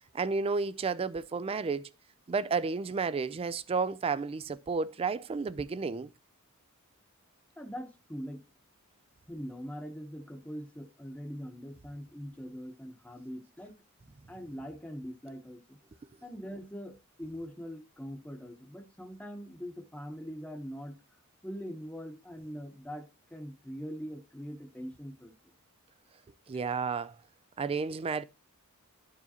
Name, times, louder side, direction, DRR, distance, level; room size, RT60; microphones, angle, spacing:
voice 1, 0.1-1.9 2.3-6.1 26.5-27.2 27.6-28.2, right 4 dB, 25° right, 0.3 m, -32 dB
voice 2, 7.6-8.4 9.3-13.7 14.3-15.8 16.2-21.0 21.4-25.3, equal, 5° left, 0.9 m, -42 dB
12.0 x 4.8 x 2.8 m
head